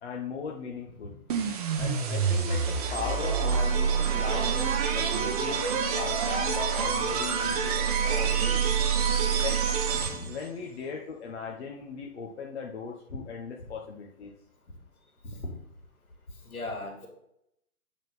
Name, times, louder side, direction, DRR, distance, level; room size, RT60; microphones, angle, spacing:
voice 1, 0.0-1.1 1.8-8.6 9.4-9.6 10.3-14.3, left 6 dB, 50° left, -1 dB, 1.1 m, -38 dB
sound 1, 1.3-10.4, right 6 dB, 25° right, 0.9 m, -27 dB
voice 2, 15.2-15.5 16.4-17.1, left 1 dB, 75° left, 1 dB, 3.1 m, -37 dB
8.8 x 3.9 x 5.5 m, 0.75 s
hypercardioid pair, 145°, 43 cm